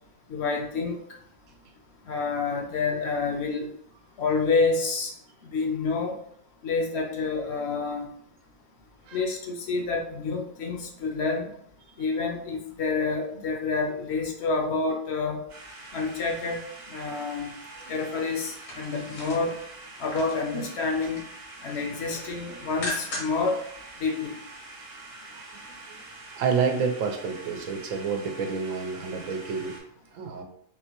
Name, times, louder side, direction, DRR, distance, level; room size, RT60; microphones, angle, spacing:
voice 1, 0.3-1.0 2.1-3.7 4.2-5.1 5.5-6.2 6.6-8.1 9.1-11.5 12.0-15.4 15.9-16.6 16.9-17.5 17.9-19.5 20.0-21.2 21.6-23.6 24.0-24.3, left 4 dB, 65° left, 2 dB, 0.8 m, -28 dB
sound 1, 15.5-29.8, right 2 dB, 60° right, 0.9 m, -45 dB
sound 2, 18.4-20.5 20.8-21.3 21.7-23.5 23.9-24.0, left 2 dB, 80° left, 1.3 m, -38 dB
voice 2, 26.3-29.7 30.1-30.4, right 5 dB, 90° right, 4 dB, 1.0 m, -29 dB
3.8 x 2.2 x 2.8 m, 0.67 s
omnidirectional pair, 1.3 m